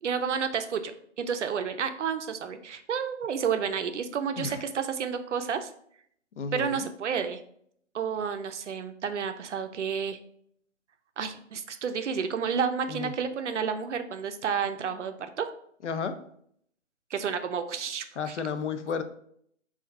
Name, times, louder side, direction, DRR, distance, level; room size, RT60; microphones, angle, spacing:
voice 1, 0.0-5.7 6.5-7.4 7.9-10.2 11.2-15.5 17.1-18.3, right 6 dB, 65° right, 8 dB, 0.5 m, -30 dB
voice 2, 6.4-6.9 12.9-13.1 15.8-16.2 18.2-19.0, left 5 dB, 70° left, 10 dB, 0.5 m, -32 dB
4.3 x 2.4 x 2.5 m, 0.66 s
figure-of-eight pair, 155°, 38 cm